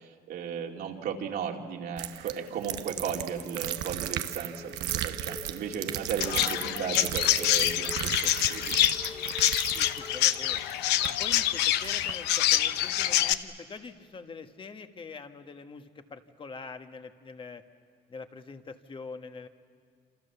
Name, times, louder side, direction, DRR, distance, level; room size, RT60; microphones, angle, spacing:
voice 1, 0.0-8.8, right 7 dB, 70° right, 1 dB, 2.8 m, -36 dB
sound 1, 2.0-11.4 11.8-12.1, right 13 dB, 85° right, 0.9 m, -35 dB
sound 2, 2.8-11.2, left 2 dB, 10° left, 2.4 m, -47 dB
Chirp tweet, 6.2-13.3, left 13 dB, 90° left, 0.8 m, -26 dB
voice 2, 9.7-10.7 11.0-17.6 18.1-19.5, left 4 dB, 30° left, 7 dB, 1.5 m, -44 dB
28.0 x 27.5 x 7.0 m, 2.1 s
cardioid pair, 110°, 17 cm